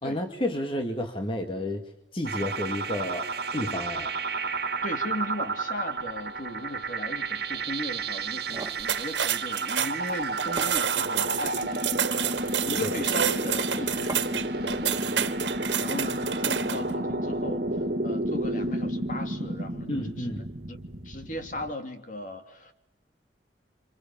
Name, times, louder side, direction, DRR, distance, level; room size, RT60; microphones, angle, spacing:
voice 1, 0.0-4.2 12.8-13.0 19.9-20.5, left 1 dB, 30° left, 4 dB, 2.0 m, -31 dB
sound 1, 2.2-21.7, right 2 dB, 60° right, 1.9 m, -31 dB
voice 2, 4.8-17.6 18.0-20.4 21.0-22.7, left 1 dB, 45° left, 6 dB, 3.0 m, -37 dB
sound 2, 8.3-8.9 10.1-10.2 10.6-11.4 12.0-12.5 14.1-14.5, right 2 dB, 20° right, 2.0 m, -39 dB
sound 3, 8.8-16.9, right 9 dB, 85° right, 1.8 m, -29 dB
29.5 x 26.5 x 7.3 m, 0.81 s
head